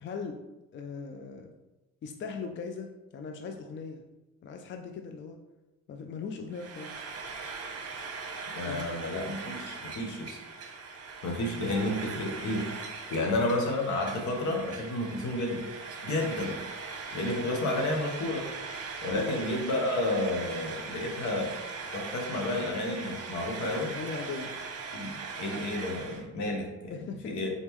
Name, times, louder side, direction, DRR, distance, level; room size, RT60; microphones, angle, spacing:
voice 1, 0.0-0.4 0.7-1.5 2.0-4.0 4.4-5.4 5.9-7.1 8.6-8.8 13.2-13.4 16.1-16.3 19.1-19.4 23.9-24.5 26.9-27.4, left 5 dB, 40° left, 4 dB, 0.4 m, -39 dB
Frying (food), 6.5-26.3, right 4 dB, 50° right, 0.9 m, -40 dB
voice 2, 8.5-10.4 11.2-12.7 13.1-15.7 16.0-16.5 17.1-18.5 19.0-21.6 21.9-24.0 24.9-27.0 27.2-27.5, left 1 dB, 75° left, 1 dB, 1.0 m, -31 dB
4.0 x 3.6 x 3.0 m, 1.0 s
cardioid pair, 90°, 30 cm